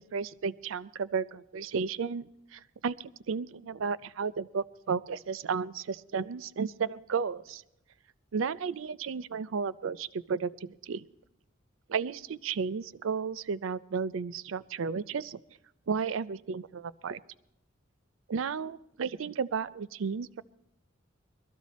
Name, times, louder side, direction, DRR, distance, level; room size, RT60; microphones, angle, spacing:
voice 1, 0.0-7.6 8.3-11.0 11.9-15.4 15.9-17.2 18.3-20.4, right 5 dB, 90° right, 18 dB, 0.5 m, -33 dB
22.0 x 13.0 x 4.2 m, 0.85 s
head